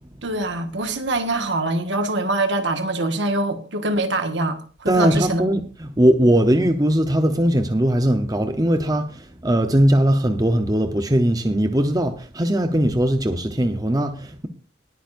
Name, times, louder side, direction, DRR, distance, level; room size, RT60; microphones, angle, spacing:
voice 1, 0.2-5.4, right 2 dB, 70° right, 1.6 m, -24 dB
voice 2, 4.9-14.5, right 1 dB, 20° right, 0.8 m, -20 dB
20.0 x 9.1 x 2.6 m
head